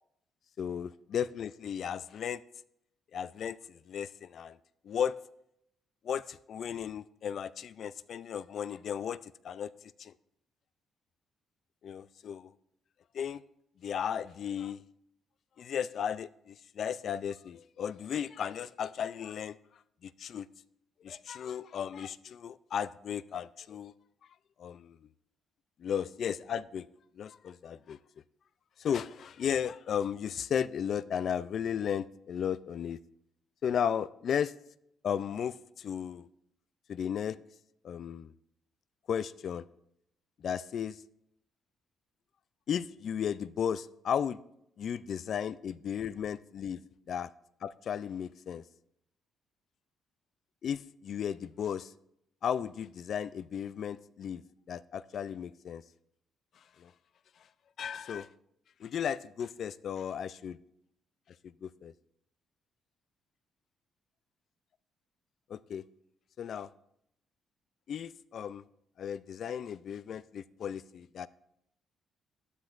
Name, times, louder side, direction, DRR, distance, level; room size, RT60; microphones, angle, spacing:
voice 1, 0.6-2.4 3.1-4.6 4.8-5.1 6.0-9.7 10.0-10.1 11.8-12.5 13.1-13.4 13.8-14.8 15.6-19.6 20.0-20.5 21.0-23.9 24.6-25.0 25.8-26.9 27.2-28.0 28.8-33.0 33.6-34.5 35.0-36.3 36.9-37.4 37.8-38.3 39.1-39.6 40.4-41.0 42.7-44.4 44.8-46.8 47.1-47.3 47.6-48.6 50.6-51.9 52.4-54.4 54.7-55.8 56.8-56.9 57.8-58.3 58.8-60.6 61.6-61.9 65.5-65.8 66.4-66.7 67.9-68.6 69.0-71.3, left 8 dB, 50° left, 17 dB, 0.3 m, -35 dB
12.5 x 11.5 x 2.5 m, 0.77 s
cardioid pair, 160°, 0 cm